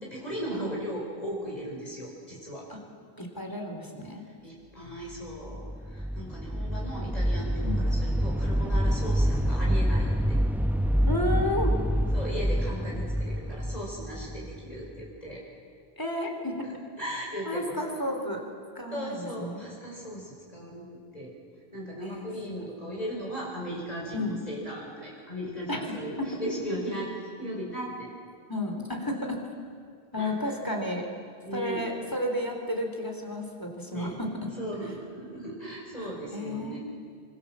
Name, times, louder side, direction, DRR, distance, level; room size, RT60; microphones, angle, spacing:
voice 1, 0.0-2.7 4.4-5.6 5.9-10.4 12.1-15.4 16.6-17.8 18.9-21.4 21.7-27.1 27.4-28.1 30.2-30.5 31.4-31.8 33.8-34.2 34.6-36.8, equal, 40° left, -3 dB, 5.2 m, -37 dB
voice 2, 3.2-4.2 7.6-7.8 11.1-11.8 16.0-16.7 17.5-18.4 18.8-19.6 22.0-22.3 22.6-22.7 24.1-24.4 25.7-26.3 28.5-29.4 30.1-31.1 31.5-34.5 36.0-36.8, left 1 dB, 20° left, 2 dB, 3.5 m, -32 dB
sound 1, 5.3-15.1, equal, ahead, 0.5 m, -27 dB
26.0 x 25.0 x 7.4 m, 2.1 s
omnidirectional pair, 1.0 m